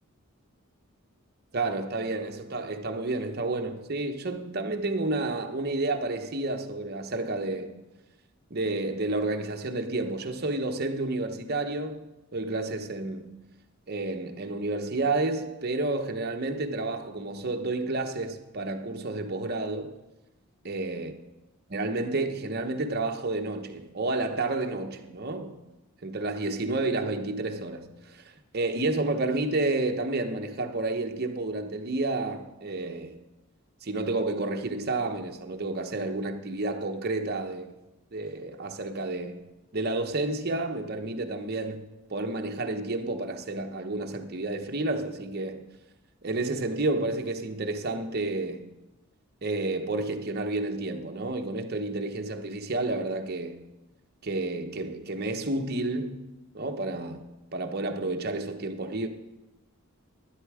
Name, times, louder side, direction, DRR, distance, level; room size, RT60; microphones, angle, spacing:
voice 1, 1.5-7.8 8.5-13.4 13.9-19.9 20.6-21.1 21.7-25.6 26.0-33.2 33.8-37.7 38.1-39.4 39.7-45.7 46.2-48.7 49.4-53.6 54.2-56.3 56.5-57.2 57.5-59.1, right 2 dB, 45° right, 0.9 m, -30 dB
11.5 x 10.0 x 4.9 m
head